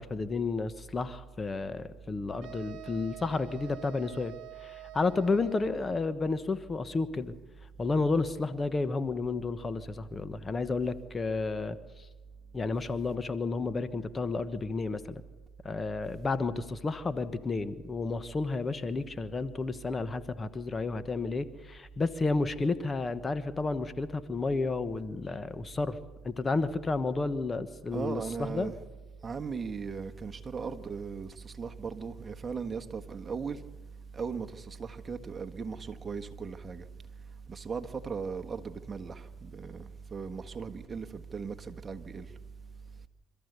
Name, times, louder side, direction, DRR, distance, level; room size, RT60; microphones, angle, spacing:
voice 1, 0.0-4.3 4.6-7.3 7.8-11.8 12.5-15.2 15.6-26.0 26.2-28.7, left 3 dB, 30° left, 1.2 m, -31 dB
sound 1, 2.4-6.1, right 16 dB, 70° right, 1.0 m, -47 dB
voice 2, 27.9-28.8 29.2-33.6 34.1-36.8 37.5-42.3, right 5 dB, 30° right, 1.5 m, -38 dB
26.5 x 14.0 x 8.2 m
supercardioid pair, 80°, 0 cm